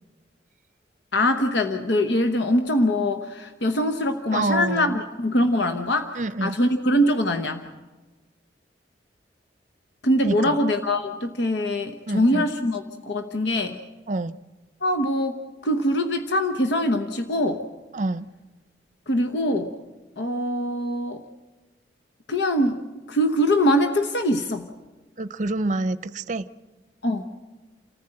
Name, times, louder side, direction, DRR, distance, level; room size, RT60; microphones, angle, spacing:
voice 1, 1.1-6.1 6.4-7.7 10.0-13.8 14.8-17.6 19.1-19.7 20.2-21.2 22.3-22.8 23.1-24.7 27.0-27.2, left 1 dB, 80° left, 6 dB, 1.0 m, -23 dB
voice 2, 4.3-5.0 6.2-6.6 10.2-10.6 12.1-12.5 14.1-14.4 17.9-18.3 25.2-26.4, right 2 dB, 45° right, 14 dB, 0.6 m, -27 dB
28.5 x 14.5 x 7.8 m, 1.2 s
head